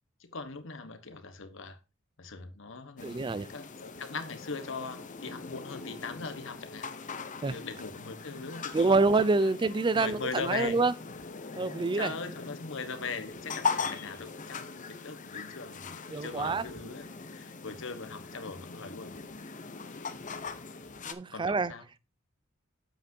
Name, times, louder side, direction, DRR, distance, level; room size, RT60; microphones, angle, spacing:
voice 1, 0.2-1.8 2.2-6.9 7.3-9.5 9.9-10.8 11.9-17.1 17.3-19.1 21.3-21.8, left 4 dB, 65° left, 1.3 m, -40 dB
sound 1, 3.0-21.1, left 5 dB, 40° left, 0.8 m, -40 dB
voice 2, 3.0-3.5 7.4-7.6 8.7-10.9 11.6-12.1 16.1-16.7 21.1-21.7, right 3 dB, 25° right, 0.4 m, -26 dB
8.8 x 7.6 x 2.7 m
head